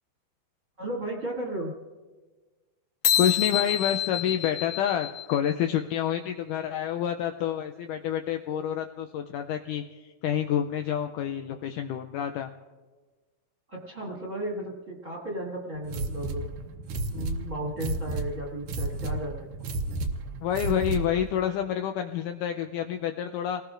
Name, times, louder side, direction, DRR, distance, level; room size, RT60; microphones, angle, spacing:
voice 1, 0.8-1.7 13.7-16.5 17.1-19.5, right 1 dB, 25° right, -3 dB, 1.9 m, -34 dB
sound 1, 3.0-5.7, left 11 dB, 60° left, 2.3 m, -28 dB
voice 2, 3.2-12.5 20.4-23.6, left 9 dB, 85° left, 7 dB, 1.8 m, -28 dB
sound 2, 15.8-21.3, right 2 dB, 70° right, 2.1 m, -32 dB
29.5 x 19.0 x 2.5 m, 1.4 s
omnidirectional pair, 4.3 m